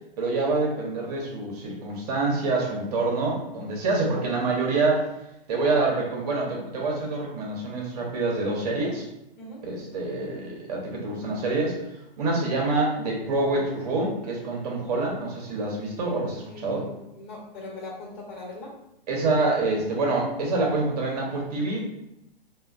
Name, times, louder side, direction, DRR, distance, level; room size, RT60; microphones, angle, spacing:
voice 1, 0.2-5.1 5.5-9.0 9.6-11.7 12.2-16.8 19.1-21.9, right 3 dB, 40° right, -1 dB, 0.7 m, -26 dB
voice 2, 16.4-18.7, left 2 dB, 50° left, -3 dB, 1.1 m, -40 dB
3.0 x 2.2 x 2.4 m, 0.85 s
hypercardioid pair, 125°, 29 cm